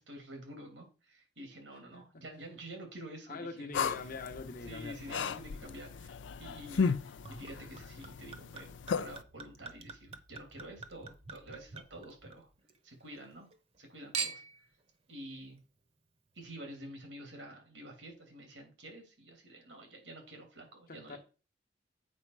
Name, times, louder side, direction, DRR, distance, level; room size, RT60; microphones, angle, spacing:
voice 1, 0.0-3.7 4.7-12.5 12.8-13.5 13.8-14.4 15.1-15.6 16.3-21.2, right 1 dB, 90° right, 2.9 m, -49 dB
voice 2, 1.9-2.2 3.3-5.2 20.9-21.2, left 3 dB, 50° left, 0.9 m, -44 dB
sound 1, 3.7-9.2, left 5 dB, 80° left, 0.4 m, -36 dB
Chink clink / Liquid, 7.3-12.8 13.1-13.8 14.1-14.7 15.4-15.5, right 6 dB, 35° right, 0.9 m, -44 dB
8.5 x 5.2 x 4.7 m
head